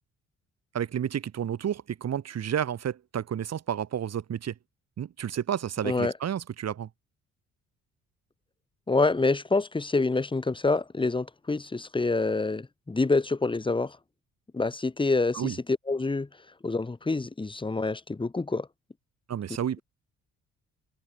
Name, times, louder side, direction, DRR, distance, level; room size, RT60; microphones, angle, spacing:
voice 1, 0.7-4.5 5.0-6.9 15.3-15.6 19.3-19.8, right 9 dB, 55° right, 3.1 m, -31 dB
voice 2, 8.9-14.0 14.5-15.6 15.9-16.3 16.6-18.7, left 3 dB, 15° left, 1.4 m, -27 dB
cardioid pair, 90°, 30 cm